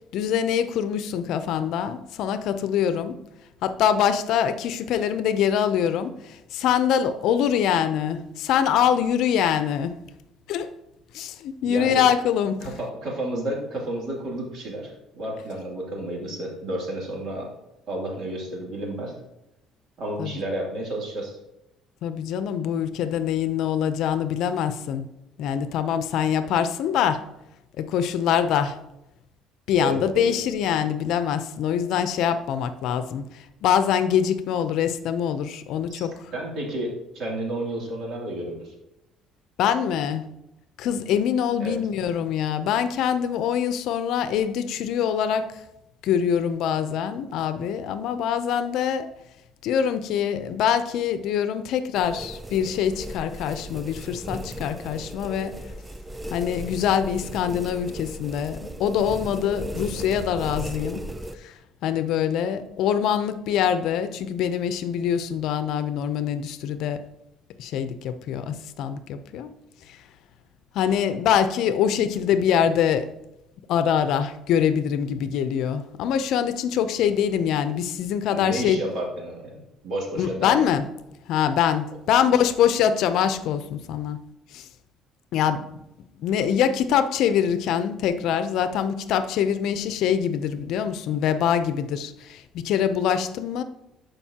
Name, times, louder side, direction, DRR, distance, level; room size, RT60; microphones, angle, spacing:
voice 1, 0.1-3.2 3.6-10.0 10.5-10.7 11.1-12.6 20.2-20.3 22.0-25.1 25.4-27.2 27.8-28.8 29.7-36.3 39.6-40.2 40.8-45.6 46.0-49.1 49.6-55.6 56.3-61.0 61.4-67.0 67.6-69.5 69.9-70.0 70.7-73.1 73.7-78.8 80.2-80.8 81.3-84.2 84.5-84.7 85.3-85.6 86.2-93.6, left 8 dB, 70° left, 11 dB, 0.6 m, -24 dB
voice 2, 11.6-12.1 12.6-17.5 17.9-19.1 20.0-21.4 29.7-30.3 35.9-36.1 36.3-38.7 41.6-41.8 78.3-80.7, right 1 dB, 60° right, -2 dB, 2.8 m, -31 dB
sound 1, 51.9-61.3, right 1 dB, 15° right, 0.5 m, -36 dB
11.5 x 5.3 x 2.9 m, 0.89 s
cardioid pair, 110°, 0 cm